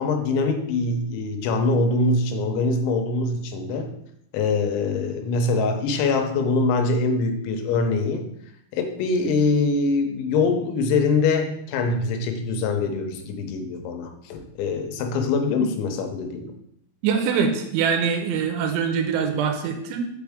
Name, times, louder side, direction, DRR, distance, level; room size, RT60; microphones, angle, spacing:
voice 1, 0.0-3.9 4.3-8.3 8.7-16.5, left 3 dB, 85° left, 5 dB, 3.1 m, -23 dB
voice 2, 17.0-20.1, right 6 dB, 90° right, 5 dB, 3.2 m, -23 dB
6.3 x 5.2 x 3.5 m, 0.78 s
omnidirectional pair, 5.3 m